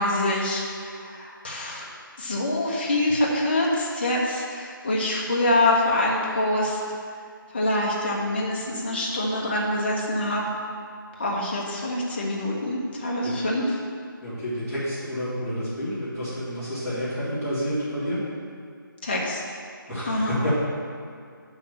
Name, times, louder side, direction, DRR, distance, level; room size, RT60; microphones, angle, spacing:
voice 1, 0.0-1.9 2.2-6.8 7.5-10.4 11.2-13.6 19.0-19.4 20.1-20.3, left 1 dB, 25° left, -3 dB, 1.1 m, -25 dB
voice 2, 14.2-18.2 19.9-20.5, equal, 5° right, -15 dB, 1.8 m, -29 dB
6.0 x 5.5 x 6.7 m, 2.2 s
figure-of-eight pair, 175°, 12 cm